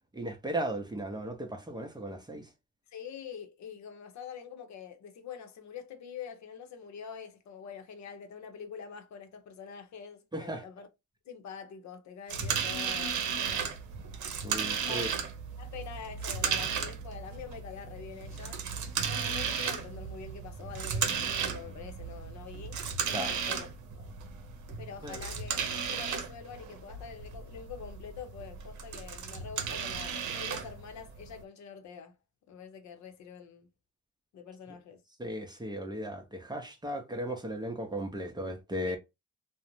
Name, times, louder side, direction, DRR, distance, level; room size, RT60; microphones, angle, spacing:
voice 1, 0.1-2.5 10.3-10.6 14.4-15.1 23.1-23.3 25.0-25.2 35.2-39.0, right 1 dB, 15° right, 0.6 m, -36 dB
voice 2, 2.9-10.9 11.3-13.7 14.9-15.2 15.6-18.6 19.0-23.7 23.9-24.2 24.8-25.6 25.9-32.2 32.5-33.7 34.3-35.0 38.9-39.0, left 7 dB, 65° left, 0.7 m, -45 dB
sound 1, 12.3-31.4, right 6 dB, 70° right, 0.7 m, -35 dB
2.5 x 2.1 x 2.9 m
cardioid pair, 90°, 30 cm